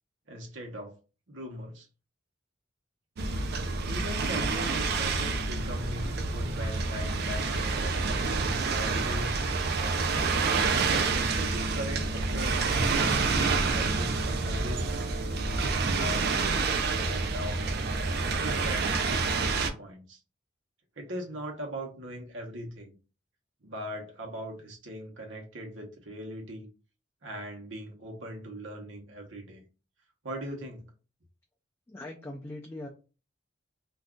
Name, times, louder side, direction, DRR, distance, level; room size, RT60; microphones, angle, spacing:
voice 1, 0.3-1.0 1.3-1.9 3.9-7.8 8.7-9.4 10.8-13.3 13.6-15.2 15.9-20.2 21.0-22.9 23.6-26.7 27.2-29.6 30.2-30.8, equal, 80° right, 0.9 m, -40 dB
sound 1, 3.2-19.7, right 4 dB, 55° right, 0.4 m, -28 dB
voice 2, 31.9-32.9, left 1 dB, 15° left, 0.4 m, -40 dB
2.5 x 2.3 x 3.5 m
head